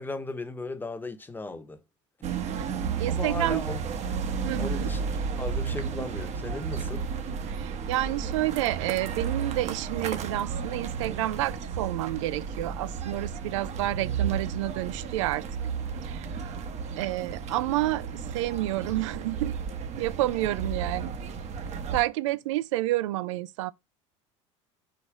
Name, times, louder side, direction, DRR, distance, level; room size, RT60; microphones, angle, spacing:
voice 1, 0.0-1.8 3.1-3.8 4.6-5.0 5.4-7.1, left 2 dB, 10° left, 1.0 m, -36 dB
sound 1, 2.2-22.0, right 6 dB, 45° right, 1.1 m, -33 dB
voice 2, 3.0-3.6 4.4-4.9 7.5-15.4 16.0-16.5 17.0-19.6 20.0-21.1 21.9-23.7, right 16 dB, 80° right, 0.5 m, -29 dB
5.1 x 4.1 x 5.9 m
hypercardioid pair, 90°, 16 cm